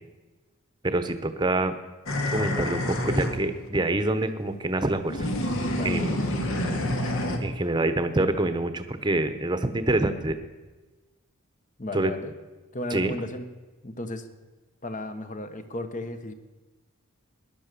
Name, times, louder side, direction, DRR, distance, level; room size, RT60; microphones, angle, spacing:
voice 1, 0.8-1.7 2.3-5.3 5.8-6.2 7.4-10.4 11.9-12.1 12.9-13.2, right 2 dB, 20° right, 9 dB, 1.0 m, -26 dB
sound 1, 2.1-3.4 5.1-7.4, left 1 dB, 60° left, 1.9 m, -28 dB
voice 2, 5.7-6.1 11.8-12.3 12.7-13.5 13.8-14.3 14.8-16.3, left 1 dB, 35° left, 9 dB, 1.1 m, -34 dB
18.5 x 11.0 x 6.9 m, 1.2 s
head